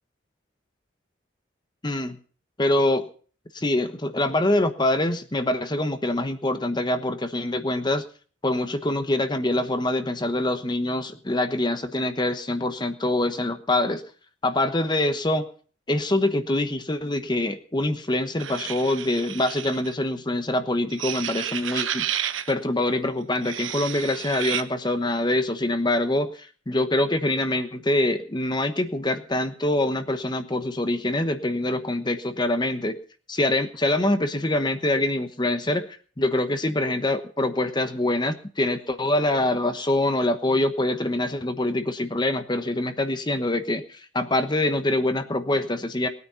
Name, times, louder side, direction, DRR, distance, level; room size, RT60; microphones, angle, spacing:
voice 1, 1.8-2.2 2.6-3.1 3.5-8.0 8.4-14.0 14.4-15.5 15.9-22.1 22.5-33.0 33.3-35.8 36.2-46.1, left 1 dB, 25° left, 9 dB, 1.0 m, -25 dB
sound 1, 18.4-19.9 20.9-22.5 23.4-24.6, right 10 dB, 80° right, 1.0 m, -31 dB
19.5 x 9.5 x 5.6 m, 0.42 s
head